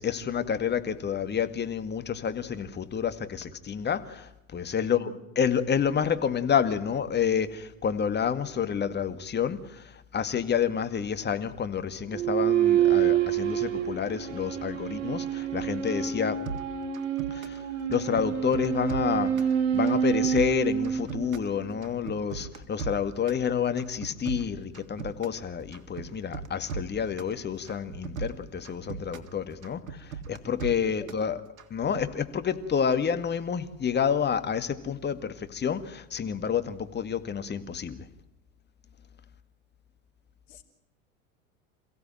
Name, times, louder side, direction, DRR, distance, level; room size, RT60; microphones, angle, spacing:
voice 1, 0.0-16.4 17.3-31.4 31.7-38.0, left 7 dB, 25° left, 2.2 m, -29 dB
voice 2, 4.8-5.2 30.8-31.1 40.5-40.6, left 4 dB, 65° left, 4.6 m, -45 dB
sound 1, 12.1-21.8, right 9 dB, 65° right, 3.6 m, -27 dB
sound 2, 16.5-17.6 17.9-19.5 19.9-21.5 21.8-23.4 23.8-25.4 25.7-27.4 27.7-29.3 29.6-31.3 31.6-32.1, right 5 dB, 85° right, 2.1 m, -38 dB
28.0 x 16.5 x 9.2 m
hypercardioid pair, 85°, 40 cm